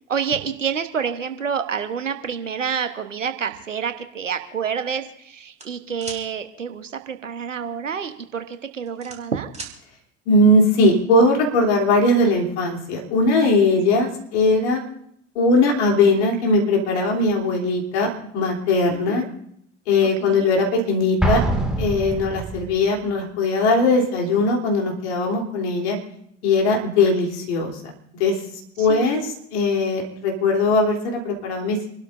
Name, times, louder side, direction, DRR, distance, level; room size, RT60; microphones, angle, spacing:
voice 1, 0.1-9.5 18.9-19.3 20.2-20.5 28.8-29.1, right 7 dB, 85° right, 9 dB, 1.2 m, -28 dB
sound 1, 5.6-6.2 7.9-8.1 8.5-9.8, right 4 dB, 20° right, 3.3 m, -37 dB
voice 2, 10.3-14.8 15.3-18.1 18.3-19.2 19.9-21.4 21.8-26.0 26.4-27.7 28.2-28.3 28.8-31.8, left 2 dB, 65° left, 1 dB, 3.4 m, -19 dB
Explosion, 21.2-22.8, right 2 dB, ahead, 2.2 m, -24 dB
28.5 x 12.0 x 2.6 m, 0.71 s
figure-of-eight pair, 70°, 37 cm